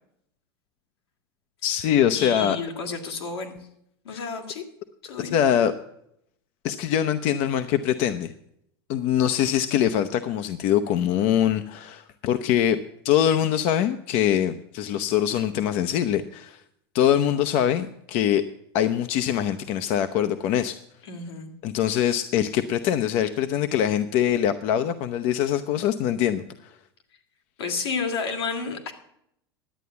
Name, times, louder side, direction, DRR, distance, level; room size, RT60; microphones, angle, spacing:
voice 1, 1.6-2.6 4.1-4.2 5.2-5.7 6.6-8.3 8.9-12.8 13.0-16.6 16.9-18.4 18.7-20.8 21.6-26.7, left 10 dB, 55° left, 10 dB, 0.7 m, -23 dB
voice 2, 2.1-3.6 4.0-4.6 5.0-5.4 21.0-21.5 27.6-28.9, left 4 dB, 85° left, 2 dB, 2.6 m, -31 dB
11.5 x 8.3 x 6.9 m, 0.74 s
hypercardioid pair, 105°, 13 cm